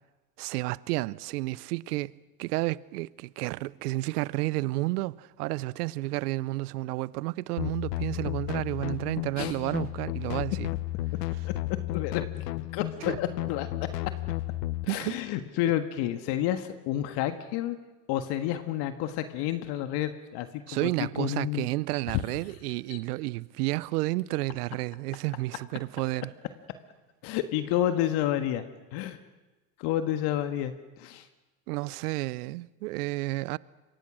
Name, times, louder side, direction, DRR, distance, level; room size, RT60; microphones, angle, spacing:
voice 1, 0.4-2.1 2.4-10.7 13.0-13.2 14.9-15.2 20.7-26.3 31.7-33.6, right 20 dB, 75° right, 0.8 m, -31 dB
sound 1, 7.6-14.9, left 17 dB, 80° left, 1.0 m, -33 dB
voice 2, 11.9-12.4 12.7-13.9 14.8-17.8 18.1-21.7 22.1-22.2 22.9-23.0 27.2-28.7 28.9-29.2 29.8-31.3, left 12 dB, 55° left, 1.8 m, -30 dB
26.5 x 23.5 x 6.3 m
supercardioid pair, 110°, 47 cm